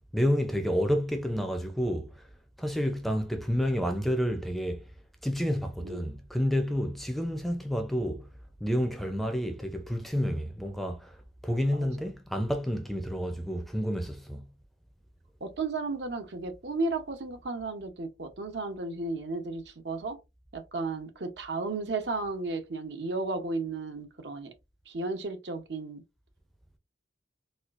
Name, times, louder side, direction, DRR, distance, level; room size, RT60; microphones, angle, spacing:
voice 1, 0.1-2.2 2.6-4.8 5.2-8.3 8.6-11.1 11.4-14.4, equal, ahead, 0.5 m, -29 dB
voice 2, 15.4-20.2 20.5-24.5 24.9-26.0, right 3 dB, 65° right, 0.8 m, -34 dB
4.2 x 2.4 x 2.5 m
head